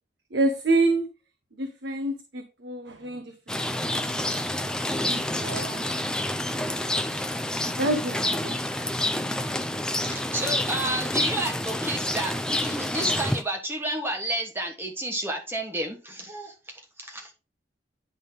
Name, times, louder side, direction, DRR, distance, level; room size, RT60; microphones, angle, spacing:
voice 1, 0.3-1.1 1.6-4.2 4.8-5.9 7.7-8.6, right 2 dB, 70° right, 0.9 m, -28 dB
Rain, 3.5-13.4, left 1 dB, 5° left, 0.4 m, -28 dB
voice 2, 10.0-17.3, right 1 dB, 10° right, 1.3 m, -31 dB
10.0 x 3.6 x 3.8 m
head